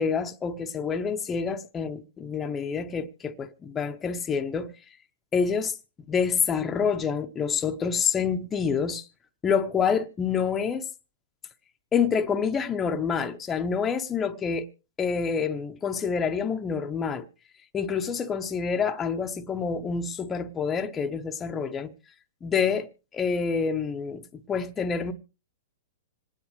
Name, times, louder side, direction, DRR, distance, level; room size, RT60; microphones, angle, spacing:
voice 1, 0.0-4.7 5.3-5.8 6.1-9.0 9.4-10.9 11.9-14.7 15.0-17.3 17.7-21.9 22.4-25.1, left 6 dB, 20° left, 0.9 m, -27 dB
26.5 x 9.9 x 3.2 m
hypercardioid pair, 125°, 0 cm